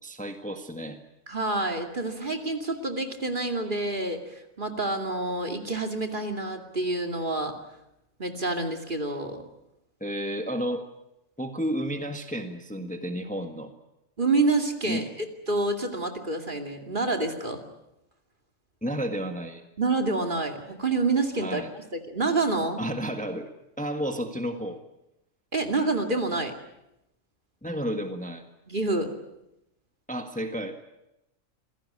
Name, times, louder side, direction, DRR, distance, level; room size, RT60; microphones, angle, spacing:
voice 1, 0.0-1.0 10.0-10.8 11.4-13.7 14.9-15.0 18.8-19.7 21.4-21.7 22.8-23.5 23.8-24.8 27.6-28.4 30.1-30.8, equal, 5° left, 6 dB, 1.6 m, -32 dB
voice 2, 1.3-7.5 8.2-9.4 14.2-17.6 19.8-22.8 25.5-26.5 28.7-29.1, right 3 dB, 40° right, 5 dB, 2.7 m, -28 dB
26.5 x 16.5 x 9.8 m, 0.87 s
omnidirectional pair, 1.4 m